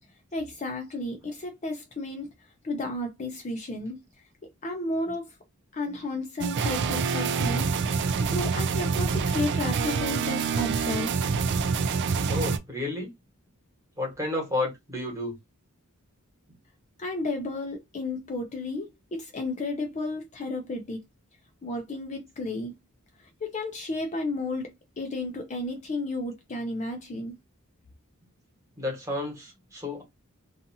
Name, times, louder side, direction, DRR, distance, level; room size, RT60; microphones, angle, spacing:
voice 1, 0.3-2.3 2.6-4.0 4.6-5.3 5.7-7.7 8.3-11.1 17.0-21.0 21.6-22.7 23.4-27.3, left 2 dB, 35° left, 0.5 m, -32 dB
sound 1, 6.4-12.6, right 5 dB, 55° right, 0.3 m, -26 dB
voice 2, 12.3-13.1 14.0-15.3 28.8-30.0, left 2 dB, 15° right, 1.2 m, -31 dB
2.6 x 2.4 x 2.7 m
head